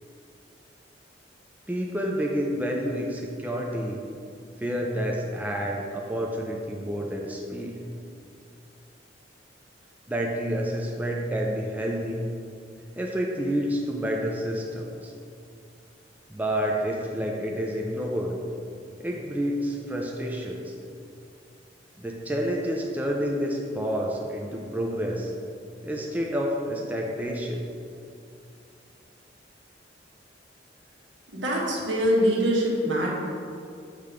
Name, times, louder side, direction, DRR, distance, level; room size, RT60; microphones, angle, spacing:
voice 1, 1.7-4.0 4.6-7.8 10.1-12.2 13.0-15.1 16.3-18.4 19.0-20.7 22.0-25.3 25.8-27.6, equal, 10° right, -1 dB, 0.4 m, -29 dB
voice 2, 31.3-33.2, equal, 75° right, -4 dB, 1.4 m, -24 dB
6.6 x 3.5 x 5.1 m, 2.5 s
head